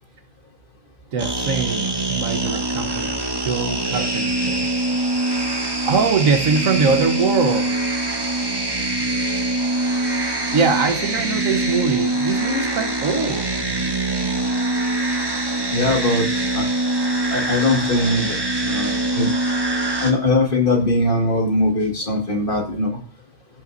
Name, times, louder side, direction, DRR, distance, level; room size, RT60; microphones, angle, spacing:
voice 1, 1.1-3.1 3.4-4.7 5.9-7.8 10.5-13.5, right 5 dB, 70° right, 6 dB, 1.5 m, -22 dB
sound 1, 1.2-20.1, right 2 dB, 20° right, 1.2 m, -23 dB
voice 2, 15.7-16.3 16.5-16.6 17.3-18.3 18.6-19.3 20.0-22.9, left 2 dB, 40° left, 0 dB, 2.1 m, -20 dB
16.0 x 5.9 x 2.7 m, 0.42 s
omnidirectional pair, 1.4 m